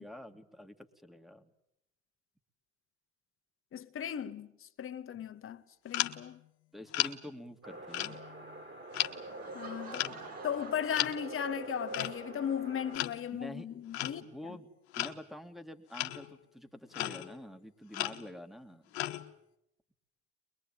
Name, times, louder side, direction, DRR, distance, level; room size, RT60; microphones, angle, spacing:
voice 1, 0.0-1.5 5.1-5.3 6.7-8.2 13.3-13.7 14.3-14.7 15.0-18.9, left 1 dB, ahead, 2.5 m, -47 dB
voice 2, 3.7-6.4 9.5-10.2 10.4-14.6, left 9 dB, 40° left, 1.6 m, -37 dB
sound 1, 5.9-6.3 6.9-7.1 7.9-8.6 8.9-9.2 9.9-10.3 10.9-11.2 11.9-12.2 12.9-13.3 13.9-14.4 14.9-15.2 15.9-16.3 16.9-17.4 17.9-18.3 18.9-19.3, left 15 dB, 80° left, 1.4 m, -35 dB
sound 2, 7.6-13.0, right 2 dB, 35° right, 4.5 m, -45 dB
Laughter / Crowd, 9.1-11.9, right 5 dB, 55° right, 5.7 m, -50 dB
23.0 x 21.5 x 9.2 m
hypercardioid pair, 75°, 32 cm